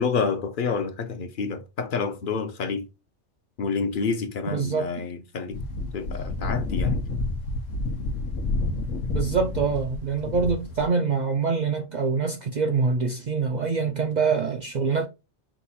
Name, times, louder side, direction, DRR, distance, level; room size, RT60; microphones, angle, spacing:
voice 1, 0.0-2.9 3.6-5.6 5.9-7.0 10.2-10.4, left 5 dB, 50° left, 0.7 m, -28 dB
voice 2, 4.5-4.9 9.1-15.1, right 5 dB, 60° right, 0.4 m, -25 dB
sound 1, 5.5-10.9, left 2 dB, 85° left, 1.1 m, -29 dB
5.0 x 2.3 x 4.1 m
omnidirectional pair, 1.3 m